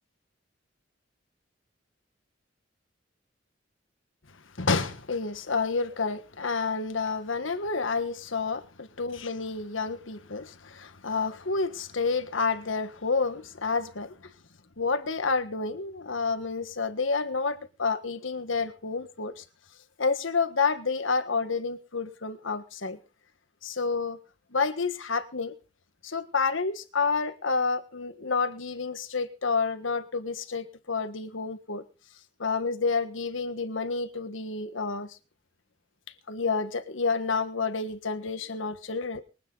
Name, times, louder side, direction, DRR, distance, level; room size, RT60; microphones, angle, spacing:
voice 1, 4.6-14.3 14.8-19.4 20.0-23.0 23.6-24.2 24.5-25.5 26.0-31.8 32.4-35.1 36.3-39.2, left 4 dB, 85° left, 1.5 m, -29 dB
23.5 x 9.4 x 3.9 m
head